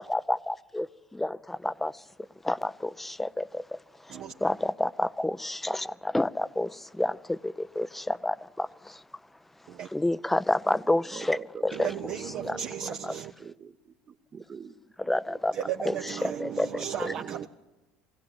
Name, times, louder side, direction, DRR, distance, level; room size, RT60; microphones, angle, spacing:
voice 1, 0.0-9.0 9.9-11.9 12.4-12.6 13.0-13.2 15.0-15.6 15.8-17.1, left 1 dB, 10° left, 0.7 m, -30 dB
voice 2, 11.1-12.1 12.8-14.8 15.0-15.4 16.2-16.3 16.7-17.3, right 6 dB, 35° right, 1.1 m, -45 dB
voice 3, 11.7-13.3 15.5-17.5, right 9 dB, 55° right, 1.0 m, -35 dB
22.0 x 16.5 x 9.6 m
hypercardioid pair, 80°, 2 cm